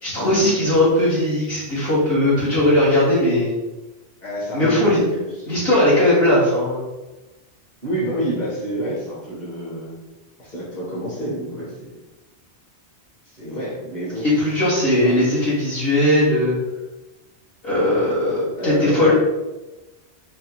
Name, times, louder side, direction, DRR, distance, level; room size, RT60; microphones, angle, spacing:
voice 1, 0.0-3.5 4.5-5.0 5.5-6.8 14.2-16.6 17.6-19.1, left 1 dB, 60° left, -8 dB, 2.2 m, -18 dB
voice 2, 4.2-6.0 7.8-10.0 10.4-12.0 13.3-14.3 14.7-15.1 18.6-19.1, equal, 40° left, -7 dB, 2.3 m, -29 dB
8.5 x 3.2 x 3.8 m, 1.1 s
omnidirectional pair, 1.1 m